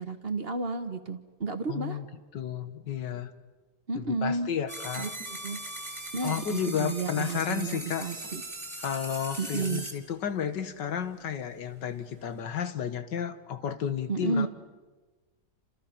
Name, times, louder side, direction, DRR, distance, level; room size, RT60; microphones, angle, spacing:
voice 1, 0.0-2.0 3.9-4.5 5.0-5.6 6.1-8.4 9.4-9.9 14.1-14.5, right 3 dB, 35° right, 8 dB, 1.4 m, -32 dB
voice 2, 1.7-2.1 2.3-3.3 4.0-5.1 6.2-8.1 8.8-14.5, left 8 dB, 85° left, 10 dB, 2.0 m, -32 dB
sound 1, 4.7-9.9, right 1 dB, 15° right, 3.6 m, -39 dB
29.0 x 27.5 x 6.0 m, 1.2 s
omnidirectional pair, 1.9 m